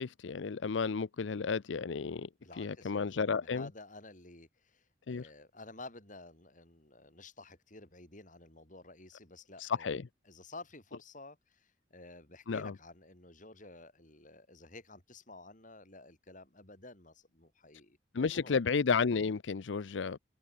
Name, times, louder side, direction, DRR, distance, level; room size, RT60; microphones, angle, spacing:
voice 1, 0.0-2.3 2.6-3.7 5.1-5.2 9.6-10.0 12.5-12.7 18.1-20.2, left 5 dB, 90° left, 0.6 m, -32 dB
voice 2, 2.4-9.9 10.3-18.6, left 2 dB, 45° left, 7.4 m, -52 dB
head